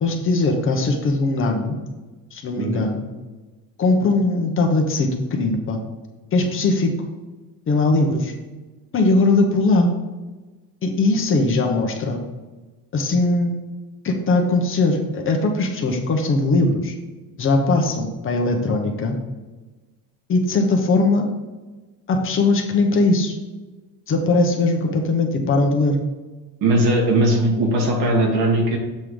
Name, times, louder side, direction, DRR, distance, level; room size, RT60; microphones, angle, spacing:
voice 1, 0.0-1.8 2.3-3.1 3.8-5.8 6.3-6.9 7.7-8.3 8.9-9.9 10.8-12.2 12.9-13.5 14.0-17.0 17.4-19.2 20.3-21.3 22.1-23.4 24.1-26.0, left 2 dB, 35° left, 2 dB, 1.0 m, -20 dB
voice 2, 26.6-28.8, right 1 dB, 80° right, 1 dB, 1.8 m, -19 dB
7.6 x 3.8 x 4.9 m, 1.2 s
cardioid pair, 155°, 37 cm